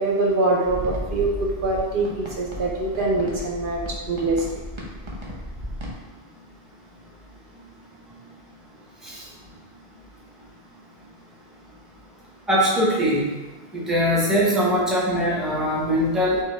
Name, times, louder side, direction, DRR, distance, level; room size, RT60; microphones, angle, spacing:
voice 1, 0.0-3.8 4.1-4.4, right 2 dB, 65° right, -2 dB, 0.7 m, -23 dB
sound 1, 0.6-5.9, equal, 30° right, 0.8 m, -35 dB
voice 2, 12.5-13.2 13.7-16.4, equal, ahead, -5 dB, 0.7 m, -21 dB
4.6 x 2.8 x 3.3 m, 1.2 s
omnidirectional pair, 1.0 m